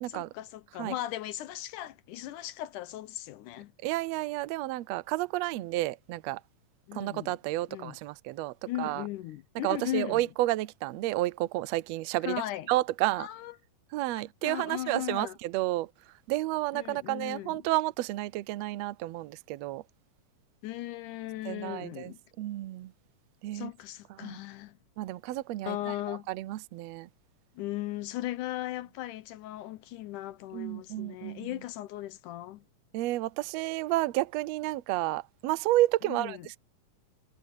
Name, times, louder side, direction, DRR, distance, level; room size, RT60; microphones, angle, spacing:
voice 1, 0.1-3.7 6.9-7.4 7.7-8.0 8.7-10.3 12.2-12.7 13.2-13.6 14.2-15.4 16.7-17.6 20.6-22.2 23.5-24.8 25.6-26.3 27.6-32.6 36.0-36.5, left 14 dB, 75° left, 2.2 m, -37 dB
voice 2, 3.8-6.4 6.9-9.0 9.6-12.4 12.7-13.3 13.9-15.9 16.3-19.8 21.4-22.9 23.4-23.7 24.2-24.4 25.0-25.8 26.1-27.1 30.5-31.5 32.9-36.6, right 17 dB, 85° right, 1.5 m, -31 dB
omnidirectional pair, 3.8 m